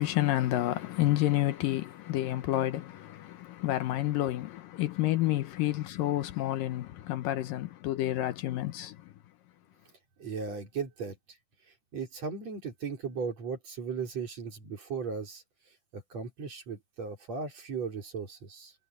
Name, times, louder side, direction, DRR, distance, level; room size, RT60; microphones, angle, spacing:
voice 1, 0.0-9.1, left 14 dB, 75° left, 2.4 m, -29 dB
voice 2, 10.2-11.2 11.9-15.4 15.9-18.7, right 5 dB, 45° right, 5.4 m, -37 dB
omnidirectional pair, 4.2 m